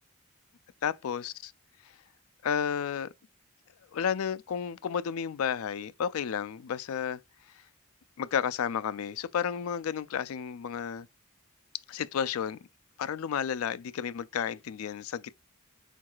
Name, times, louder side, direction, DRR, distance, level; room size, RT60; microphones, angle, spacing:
voice 1, 0.8-1.5 2.4-3.1 3.9-7.2 8.2-11.1 11.9-12.6 13.0-15.3, left 8 dB, 75° left, 0.4 m, -32 dB
4.6 x 4.6 x 2.3 m
head